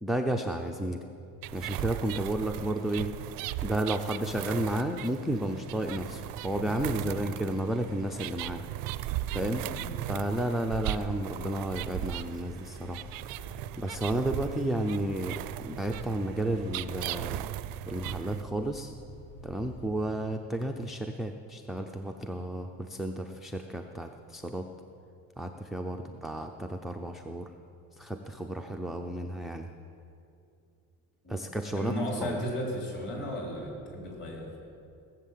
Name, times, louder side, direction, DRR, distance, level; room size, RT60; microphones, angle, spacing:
voice 1, 0.0-1.0 1.5-3.2 3.6-8.6 9.3-9.7 10.1-17.5 17.9-18.9 19.4-24.7 25.4-27.5 27.9-29.7 31.3-31.9 32.2-32.4, right 1 dB, ahead, 3 dB, 0.3 m, -32 dB
sound 1, 1.4-18.4, right 15 dB, 80° right, 0.5 m, -37 dB
sound 2, 5.7-19.9, left 1 dB, 80° left, 2.9 m, -51 dB
voice 2, 7.0-7.3 9.5-9.9 26.0-26.1 31.2-31.4 31.7-34.5, equal, 30° left, -2 dB, 3.7 m, -35 dB
17.5 x 7.7 x 7.4 m, 2.6 s
cardioid pair, 165°, 34 cm